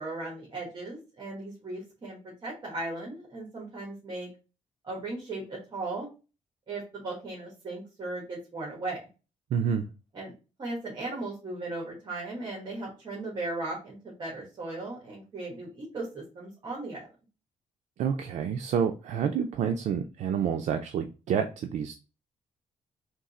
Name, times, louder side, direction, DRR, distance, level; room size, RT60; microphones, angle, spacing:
voice 1, 0.0-4.3 4.8-6.1 6.7-9.0 10.1-10.3 10.6-17.1, right 2 dB, 35° right, 1.4 m, -37 dB
voice 2, 9.5-9.9 18.0-22.0, right 7 dB, 65° right, 0.4 m, -28 dB
3.7 x 2.8 x 4.1 m
cardioid pair, 165°, 13 cm